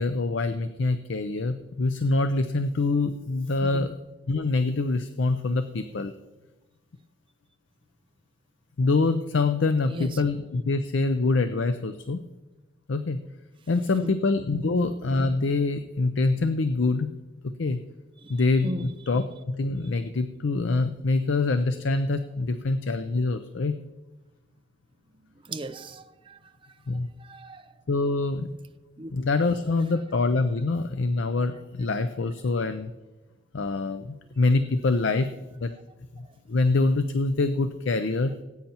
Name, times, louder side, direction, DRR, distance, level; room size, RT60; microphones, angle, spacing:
voice 1, 0.0-4.0 4.3-6.1 8.8-12.2 12.9-13.3 13.7-17.1 17.4-17.8 18.3-23.8 26.9-27.1 27.9-28.5 29.1-32.9 33.5-35.7 36.5-38.3, left 3 dB, 70° left, 0.5 m, -25 dB
voice 2, 18.2-18.9 25.4-26.4 27.2-27.7 29.0-29.1 29.6-29.7, right 1 dB, 25° right, 0.6 m, -36 dB
18.5 x 9.1 x 2.9 m
head